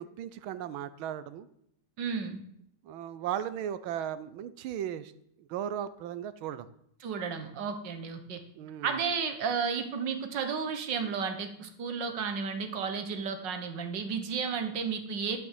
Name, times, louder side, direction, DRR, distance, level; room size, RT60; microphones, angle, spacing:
voice 1, 0.0-1.5 2.8-5.1 5.4-6.7 8.5-9.0, right 10 dB, 75° right, 14 dB, 1.5 m, -36 dB
voice 2, 2.0-2.4 7.0-8.4 8.8-15.4, right 6 dB, 60° right, 7 dB, 1.8 m, -33 dB
12.0 x 6.5 x 7.4 m, 0.73 s
omnidirectional pair, 2.3 m